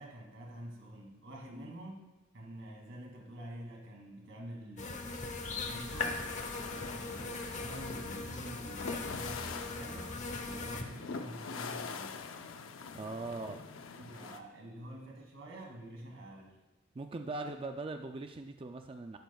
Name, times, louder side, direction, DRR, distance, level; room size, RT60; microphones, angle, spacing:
voice 1, 0.0-6.3 6.5-12.3 13.2-13.5 13.9-16.6, right 1 dB, 70° right, -1 dB, 2.4 m, -48 dB
sound 1, 4.8-10.8, left 3 dB, 40° left, 0.9 m, -39 dB
sound 2, 5.9-14.4, left 5 dB, 85° left, 0.6 m, -45 dB
voice 2, 12.9-13.6 16.9-19.2, right 3 dB, 30° right, 6 dB, 0.4 m, -40 dB
12.0 x 12.0 x 2.3 m, 1.0 s
head